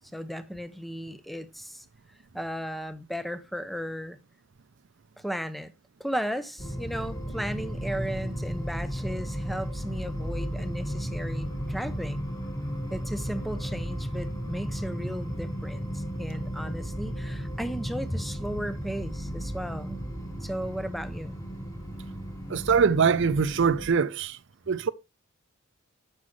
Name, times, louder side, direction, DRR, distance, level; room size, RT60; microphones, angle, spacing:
voice 1, 0.1-1.9 2.3-4.2 5.2-5.7 6.0-12.2 12.9-20.0 20.4-21.3, equal, ahead, 0.5 m, -35 dB
sound 1, 6.6-23.9, equal, 15° left, 1.7 m, -34 dB
voice 2, 22.5-24.4 24.7-24.9, right 6 dB, 60° right, 0.5 m, -23 dB
9.4 x 6.4 x 3.1 m
head